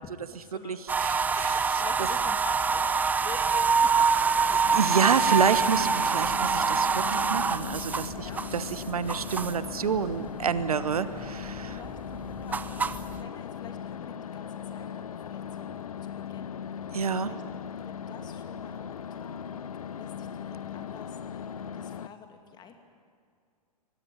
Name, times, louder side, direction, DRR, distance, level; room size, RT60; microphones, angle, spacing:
voice 1, 0.0-0.9 1.2-4.8 5.3-5.4 8.2-8.5 11.0-11.3 11.7-15.7 16.0-17.4 17.8-22.8, left 6 dB, 20° left, 6 dB, 2.5 m, -47 dB
voice 2, 0.6-1.6 4.8-11.8 16.9-17.3, right 6 dB, 65° right, 14 dB, 1.2 m, -28 dB
sound 1, 0.9-9.7 10.1-10.8 11.1-13.2, right 5 dB, 10° right, 0.6 m, -26 dB
sound 2, 4.6-22.1, left 8 dB, 65° left, 0.7 m, -38 dB
23.5 x 21.5 x 9.3 m, 2.2 s
figure-of-eight pair, 105°, 20 cm